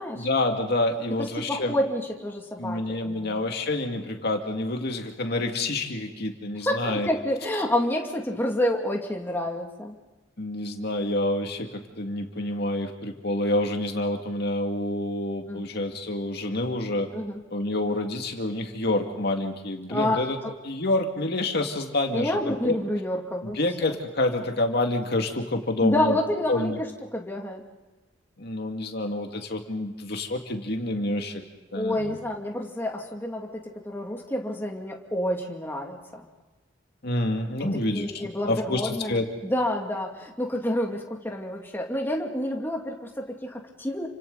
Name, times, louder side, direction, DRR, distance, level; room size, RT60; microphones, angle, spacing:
voice 1, 0.1-1.8 2.6-7.1 10.4-17.1 17.5-20.4 20.6-22.7 23.4-26.2 26.5-26.8 28.4-31.4 31.7-32.2 37.0-38.1 38.5-39.3, left 2 dB, 55° left, 3 dB, 2.3 m, -28 dB
voice 2, 1.2-3.4 6.7-9.9 15.5-15.7 17.1-17.4 19.9-20.6 22.1-23.9 25.8-27.6 31.7-36.2 37.6-44.1, left 1 dB, 10° left, 1 dB, 2.4 m, -29 dB
29.5 x 25.5 x 4.1 m, 1.1 s
head